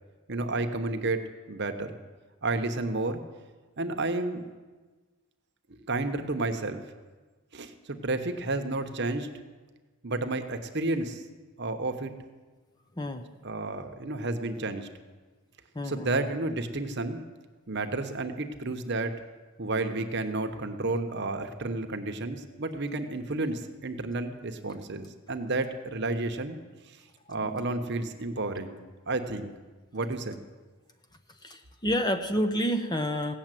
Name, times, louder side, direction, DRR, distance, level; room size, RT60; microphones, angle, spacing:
voice 1, 0.3-1.2 1.5-2.0 2.4-3.2 3.8-4.5 5.9-6.8 7.5-9.3 10.0-11.2 11.6-12.1 13.4-14.9 15.8-17.2 17.7-19.2 19.6-26.6 27.3-28.8 29.1-29.5 29.9-30.4, right 2 dB, 50° right, 6 dB, 1.0 m, -31 dB
voice 2, 13.0-13.3 15.7-16.3 27.3-27.6 31.4-33.3, equal, 20° left, 7 dB, 0.7 m, -29 dB
16.5 x 7.2 x 9.1 m, 1.3 s
head